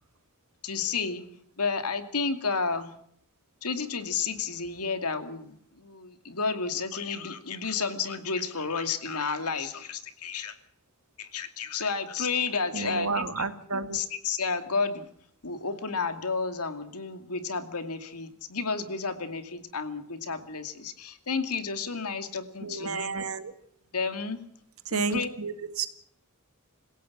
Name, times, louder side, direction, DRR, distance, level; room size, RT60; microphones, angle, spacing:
voice 1, 0.6-1.2 1.6-2.9 3.6-10.6 11.2-13.4 13.9-15.1 15.4-23.1 23.9-24.4 24.9-25.3, left 4 dB, 90° left, 2.5 m, -31 dB
voice 2, 12.7-14.0 22.6-23.5 24.9-25.9, right 4 dB, 70° right, 2.0 m, -31 dB
27.0 x 16.5 x 6.2 m
head